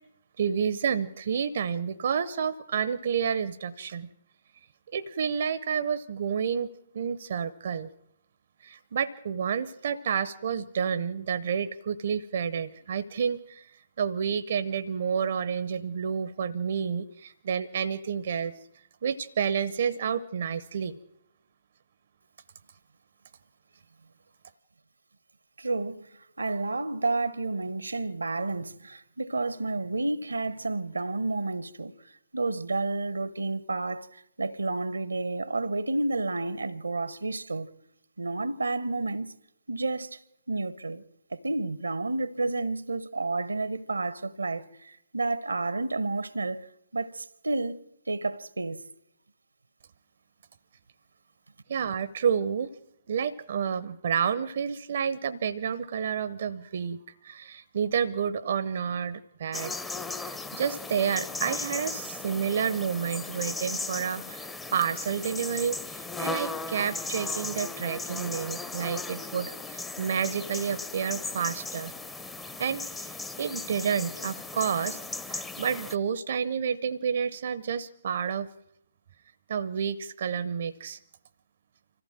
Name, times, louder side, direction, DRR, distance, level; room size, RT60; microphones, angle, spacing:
voice 1, 0.4-4.1 4.9-7.9 8.6-18.5 19.0-21.0 51.7-52.7 53.1-59.8 60.2-71.9 72.6-75.0 75.3-78.5 79.5-81.0, right 7 dB, 55° right, 0.7 m, -30 dB
voice 2, 25.6-26.1 26.4-37.7 38.2-39.4 39.7-40.2 40.5-41.0 41.3-47.8 48.1-48.8, right 2 dB, 80° right, 0.9 m, -31 dB
sound 1, 59.5-75.9, left 3 dB, 10° left, 0.8 m, -37 dB
25.5 x 14.5 x 7.5 m
figure-of-eight pair, 130°, 0 cm